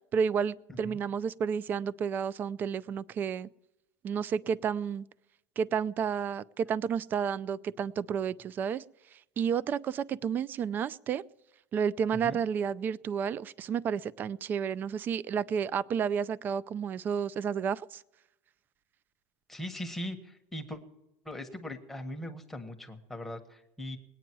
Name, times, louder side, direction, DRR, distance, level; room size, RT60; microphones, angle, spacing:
voice 1, 0.1-3.5 4.0-5.1 5.6-8.8 9.4-11.2 11.7-18.0, right 7 dB, 30° right, 20 dB, 0.4 m, -31 dB
voice 2, 19.5-20.8 21.2-24.0, left 1 dB, 5° left, 5 dB, 1.5 m, -40 dB
21.0 x 9.2 x 4.7 m, 0.90 s
supercardioid pair, 140°, 6 cm